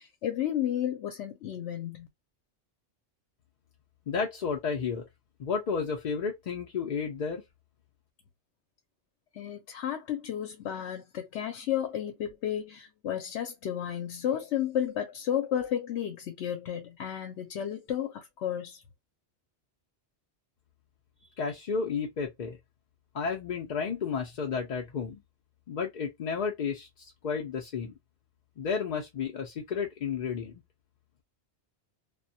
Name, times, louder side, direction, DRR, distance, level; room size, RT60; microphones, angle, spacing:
voice 1, 0.0-2.1 9.3-18.8, left 10 dB, 80° left, 0.9 m, -32 dB
voice 2, 4.1-5.0 5.4-7.4 21.4-22.6 23.1-25.2 25.7-28.0 28.6-30.5, left 5 dB, 55° left, 0.5 m, -32 dB
2.2 x 2.1 x 2.6 m
omnidirectional pair, 1.2 m